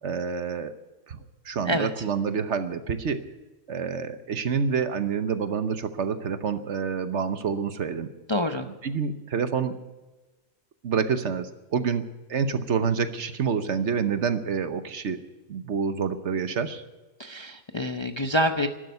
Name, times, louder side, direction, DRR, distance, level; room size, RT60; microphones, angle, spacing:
voice 1, 0.0-0.7 1.1-3.3 3.7-8.1 8.6-9.8 10.8-12.0 12.3-15.2 15.5-16.8, right 6 dB, 60° right, 10 dB, 1.2 m, -28 dB
voice 2, 8.3-8.7 17.2-18.7, left 1 dB, 25° left, 6 dB, 0.6 m, -26 dB
12.5 x 12.0 x 9.3 m, 1.1 s
omnidirectional pair, 1.4 m